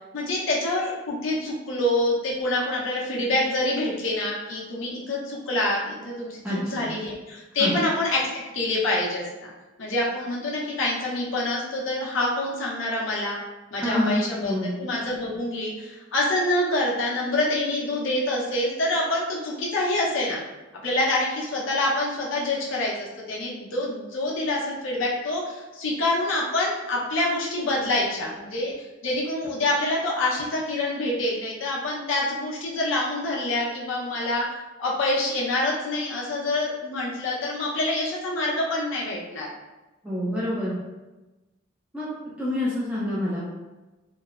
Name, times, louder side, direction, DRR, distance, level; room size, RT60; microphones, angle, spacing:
voice 1, 0.1-8.3 8.5-9.5 9.8-13.4 13.7-14.5 14.8-20.4 20.8-28.7 29.0-34.4 34.8-39.5, left 1 dB, 80° left, -3 dB, 0.7 m, -26 dB
voice 2, 6.4-6.9 7.6-7.7 13.8-14.7 40.0-40.8 41.9-42.1 42.4-43.4, left 1 dB, 5° right, -9 dB, 0.4 m, -27 dB
2.9 x 2.0 x 2.4 m, 1.1 s
head